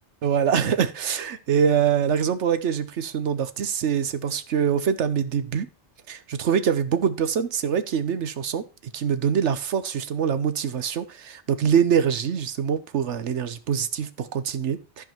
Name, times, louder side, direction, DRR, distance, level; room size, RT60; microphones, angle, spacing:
voice 1, 0.2-5.7 6.1-8.6 8.9-15.0, right 7 dB, 75° right, 1.1 m, -24 dB
13.5 x 4.9 x 4.4 m
omnidirectional pair, 1.2 m